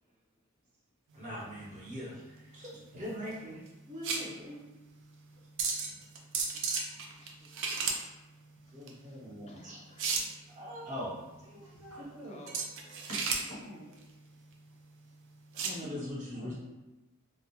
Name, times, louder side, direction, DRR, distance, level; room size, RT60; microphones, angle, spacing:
voice 1, 1.1-4.6 8.7-9.8 10.6-11.1 15.6-16.5, equal, 35° right, -6 dB, 0.7 m, -41 dB
sound 1, 1.1-15.8, right 4 dB, 60° right, 0.4 m, -37 dB
voice 2, 7.2-7.7 9.5-10.2 12.3-13.1, left 1 dB, 30° left, -1 dB, 0.3 m, -56 dB
voice 3, 11.5-12.5 13.1-14.0 15.8-16.5, equal, 75° right, -5 dB, 0.9 m, -46 dB
2.3 x 2.0 x 2.8 m, 1.1 s
head